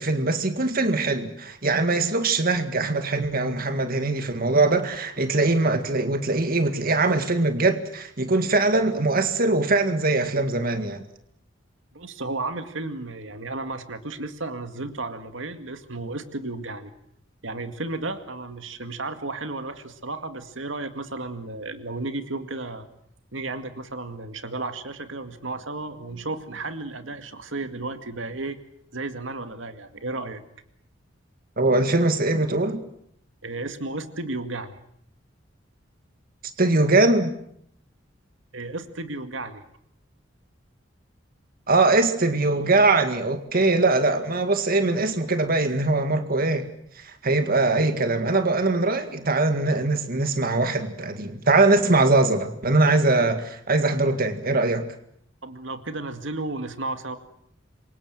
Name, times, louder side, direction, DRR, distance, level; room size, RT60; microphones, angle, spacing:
voice 1, 0.0-11.0 31.6-32.8 36.6-37.3 41.7-46.7 47.0-54.9, right 2 dB, 50° right, 8 dB, 2.0 m, -22 dB
voice 2, 11.9-16.9 17.4-22.9 23.3-28.6 28.9-30.4 33.4-34.8 38.5-39.6 55.4-57.2, right 2 dB, 85° right, 8 dB, 2.1 m, -33 dB
27.5 x 24.5 x 7.8 m, 0.71 s
head